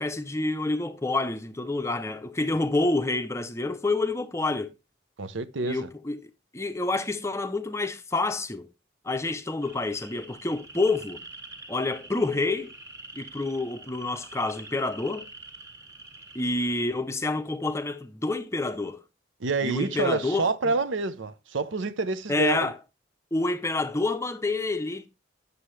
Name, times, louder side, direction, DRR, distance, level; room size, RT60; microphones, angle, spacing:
voice 1, 0.0-4.7 5.6-6.2 6.5-8.7 9.0-11.2 11.7-12.7 13.2-15.3 16.3-19.0 19.6-20.7 22.3-22.8 23.3-25.1, left 2 dB, 15° left, 0.5 m, -28 dB
voice 2, 5.2-5.9 19.4-22.7, right 3 dB, 80° right, 0.7 m, -28 dB
sound 1, 9.6-16.8, right 2 dB, 15° right, 1.7 m, -46 dB
9.5 x 6.8 x 3.1 m
head